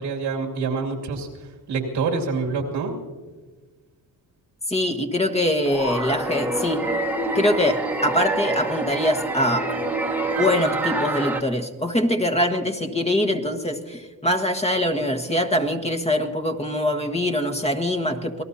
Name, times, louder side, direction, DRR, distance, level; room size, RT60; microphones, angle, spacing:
voice 1, 0.0-2.9, right 4 dB, 90° right, 0 dB, 2.6 m, -27 dB
voice 2, 4.7-6.9 7.3-9.7 10.4-18.4, left 1 dB, 15° left, 5 dB, 1.5 m, -23 dB
sound 1, 5.6-11.4, right 2 dB, 5° right, 1.4 m, -26 dB
27.0 x 18.0 x 2.8 m, 1.4 s
cardioid pair, 75°, 40 cm